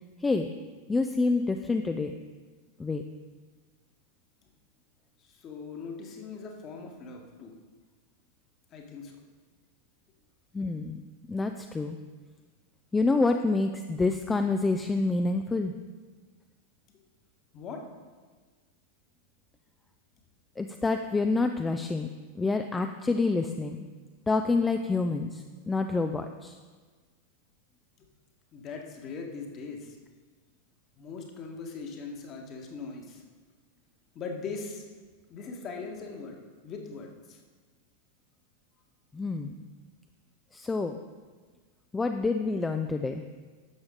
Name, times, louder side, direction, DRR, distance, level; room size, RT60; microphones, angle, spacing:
voice 1, 0.9-2.1 2.8-3.0 10.5-11.0 11.3-12.0 12.9-15.7 20.6-22.1 22.3-23.8 24.3-26.6 39.1-39.5 40.5-41.0 41.9-43.2, left 3 dB, 10° left, 6 dB, 0.5 m, -27 dB
voice 2, 5.4-7.5 8.7-9.2 17.5-17.8 28.0-28.1 28.5-30.0 31.0-33.2 34.1-34.8 35.3-36.3 36.6-37.4, left 4 dB, 30° left, 2 dB, 1.5 m, -40 dB
11.0 x 7.2 x 3.9 m, 1.4 s
figure-of-eight pair, 90°, 0 cm